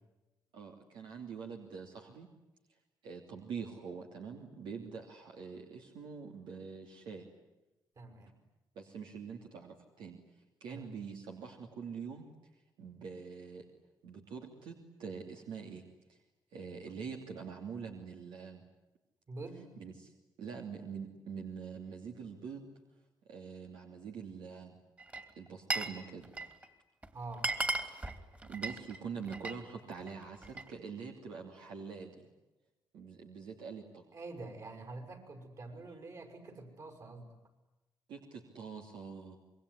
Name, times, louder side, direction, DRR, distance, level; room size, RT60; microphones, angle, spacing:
voice 1, 0.5-2.3 3.0-7.3 8.7-10.2 10.6-12.3 12.8-13.6 14.0-16.2 16.5-18.6 19.8-20.1 20.4-22.7 23.2-24.8 25.3-26.3 28.4-32.3 32.9-34.0 38.1-39.4, right 6 dB, 80° right, 1 dB, 3.0 m, -45 dB
voice 2, 8.0-8.3 10.7-11.0 19.3-19.6 27.1-27.5 34.1-37.3, right 3 dB, 50° right, 5 dB, 6.5 m, -46 dB
Glass, 25.0-26.0 26.2-26.7 27.0-27.1 27.3-29.6 30.0-30.7, right 2 dB, 20° right, 2.9 m, -36 dB
26.0 x 22.5 x 10.0 m, 1.0 s
cardioid pair, 80°, 8 cm